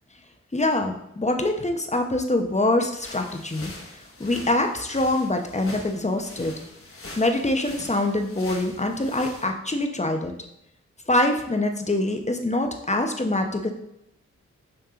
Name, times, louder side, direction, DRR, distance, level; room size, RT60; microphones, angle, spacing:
voice 1, 0.5-3.7 4.2-6.5 7.2-10.3 11.1-13.7, left 2 dB, 25° left, 4 dB, 1.0 m, -24 dB
sound 1, 3.0-9.5, left 2 dB, 50° left, 1.6 m, -43 dB
8.8 x 3.5 x 3.7 m, 0.82 s
cardioid pair, 45°, 29 cm